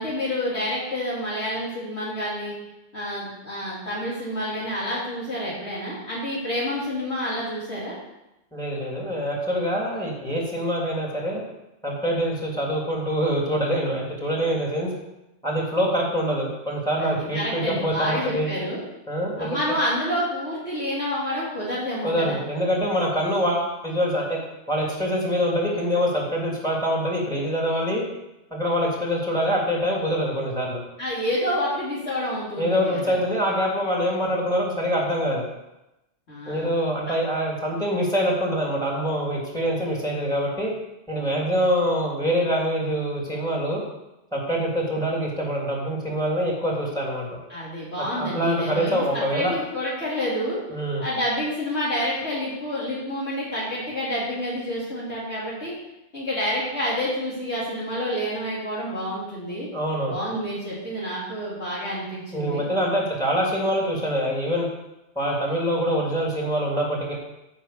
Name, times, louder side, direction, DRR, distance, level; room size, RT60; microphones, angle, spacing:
voice 1, 0.0-2.5 2.9-8.0 17.0-18.8 19.4-22.4 31.0-33.1 36.3-36.7 47.5-50.6 51.0-55.8 56.1-59.7 60.1-62.7, equal, 60° left, -7 dB, 3.9 m, -28 dB
voice 2, 8.5-11.4 11.8-14.9 15.4-18.5 19.1-19.5 22.0-24.4 24.7-28.0 28.5-30.8 32.6-35.4 36.5-40.7 41.1-43.8 44.3-47.3 48.2-49.5 50.7-51.0 59.7-60.2 62.3-64.7 65.1-67.1, equal, 5° left, -3 dB, 3.0 m, -25 dB
9.8 x 5.7 x 7.8 m, 0.92 s
omnidirectional pair, 1.3 m